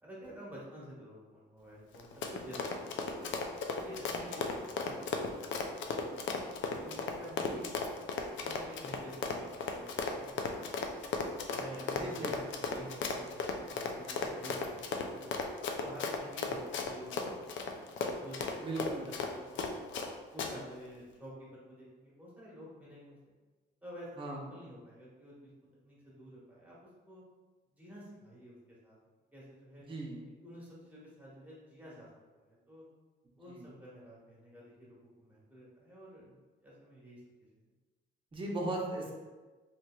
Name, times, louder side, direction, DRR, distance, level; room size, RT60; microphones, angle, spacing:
voice 1, 0.0-3.3 3.8-6.2 6.6-8.0 8.4-11.0 11.5-15.4 15.7-17.8 18.2-19.7 20.3-23.3 23.8-25.5 25.8-26.8 27.1-27.2 27.7-28.6 28.8-29.0 29.3-29.9 30.4-32.1 32.3-32.8 33.3-37.2, equal, 10° right, -7 dB, 1.2 m, -50 dB
Run, 1.9-20.1 20.4-20.5, left 5 dB, 70° left, 0.4 m, -36 dB
voice 2, 11.9-12.3 18.6-19.1 24.2-24.4 29.9-30.2 33.5-33.7 38.3-39.1, right 2 dB, 25° right, -2 dB, 0.6 m, -37 dB
2.9 x 2.9 x 2.2 m, 1.3 s
cardioid pair, 90°, 20 cm